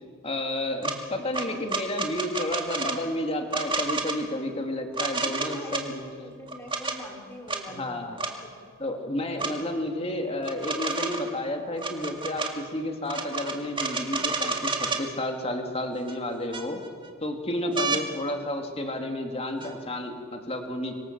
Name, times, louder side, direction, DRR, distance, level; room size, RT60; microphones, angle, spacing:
voice 1, 0.2-6.0 7.7-8.1 8.8-16.8 17.2-20.9, left 1 dB, 30° left, 4 dB, 2.7 m, -31 dB
sound 1, 0.8-1.0 1.3-3.0 3.5-4.2 4.9-5.8 6.5-7.0 7.5-7.6 8.2-8.3 9.4-9.5 10.4-11.3 11.8-12.5 13.1-15.0 16.1-16.2 16.5-17.1 17.8-18.0 19.6-19.7, right 3 dB, 25° right, 2.2 m, -30 dB
voice 2, 5.0-8.7 9.3-9.5 17.5-18.2, equal, 10° left, 0 dB, 5.1 m, -45 dB
26.0 x 24.0 x 7.5 m, 2.1 s
head